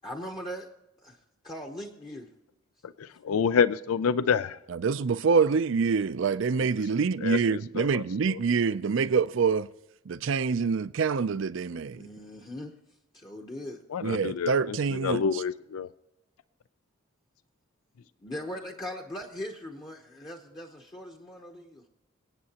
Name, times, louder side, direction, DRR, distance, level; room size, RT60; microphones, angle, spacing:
voice 1, 0.0-0.7 1.0-1.2 1.4-2.3 11.9-12.7 13.1-13.8 18.2-21.8, equal, 20° left, 0.8 m, -39 dB
voice 2, 3.2-4.6 7.2-8.0 8.3-8.4 13.9-14.8 15.0-15.9, left 6 dB, 80° left, 0.4 m, -27 dB
voice 3, 4.7-9.7 10.1-12.1 14.0-15.4, right 5 dB, 60° right, 0.4 m, -26 dB
25.0 x 8.8 x 2.9 m
head